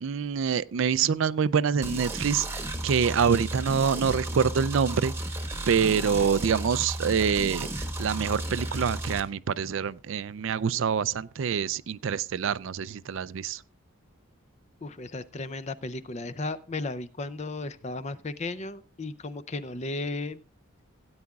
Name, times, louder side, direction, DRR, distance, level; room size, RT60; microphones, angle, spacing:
voice 1, 0.0-5.1 5.7-13.6, right 6 dB, 65° right, 0.4 m, -26 dB
sound 1, 1.8-9.2, right 1 dB, 10° right, 1.1 m, -33 dB
voice 2, 14.8-20.4, left 2 dB, 30° left, 0.5 m, -35 dB
16.5 x 9.6 x 2.4 m
head